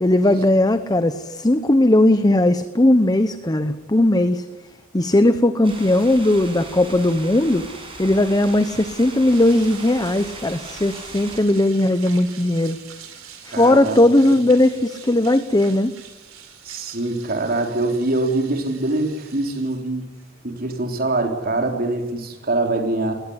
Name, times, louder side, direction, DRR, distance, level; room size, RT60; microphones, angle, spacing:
voice 1, 0.0-4.4 4.9-7.7 8.0-12.8 13.5-15.9, left 1 dB, 20° left, 11 dB, 0.9 m, -18 dB
sound 1, 5.6-11.4, right 2 dB, 25° right, 7.3 m, -38 dB
sound 2, 8.4-21.9, right 8 dB, 85° right, 4.2 m, -44 dB
voice 2, 13.5-14.0 16.6-20.0 20.4-23.1, right 2 dB, 45° right, 4 dB, 3.8 m, -23 dB
21.0 x 18.5 x 9.7 m, 1.0 s
head